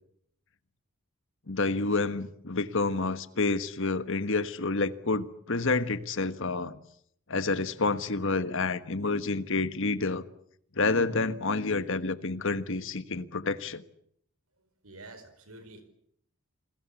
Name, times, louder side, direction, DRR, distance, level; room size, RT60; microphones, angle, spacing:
voice 1, 1.5-6.8 7.3-10.2 10.7-13.8, left 3 dB, 60° left, 1.4 m, -29 dB
voice 2, 14.8-15.8, right 2 dB, 75° right, 4.7 m, -48 dB
28.5 x 21.0 x 8.4 m
head